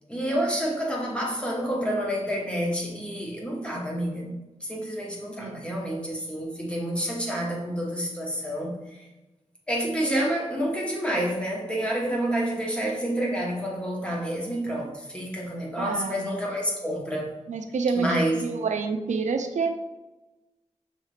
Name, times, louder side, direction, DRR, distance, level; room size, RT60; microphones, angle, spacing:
voice 1, 0.1-9.1 9.7-17.3 17.9-18.4, equal, 10° left, -2 dB, 1.1 m, -29 dB
voice 2, 15.8-16.3 17.5-19.7, right 5 dB, 80° right, 6 dB, 0.4 m, -28 dB
5.5 x 2.9 x 3.2 m, 1.0 s
wide cardioid pair, 95°, 12 cm